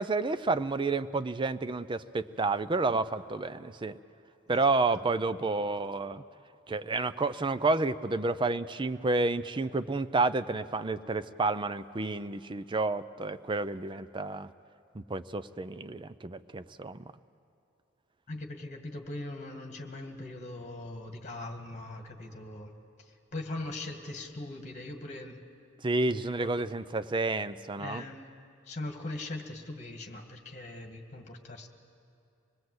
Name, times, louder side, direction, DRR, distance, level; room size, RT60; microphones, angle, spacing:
voice 1, 0.0-4.0 4.5-6.2 6.7-14.5 14.9-17.0 25.8-28.0, right 3 dB, 25° right, 12 dB, 0.5 m, -30 dB
voice 2, 18.3-25.4 26.4-26.6 27.8-28.3 28.7-31.7, left 2 dB, 35° left, 4 dB, 2.0 m, -41 dB
25.5 x 19.5 x 7.9 m, 2.6 s
head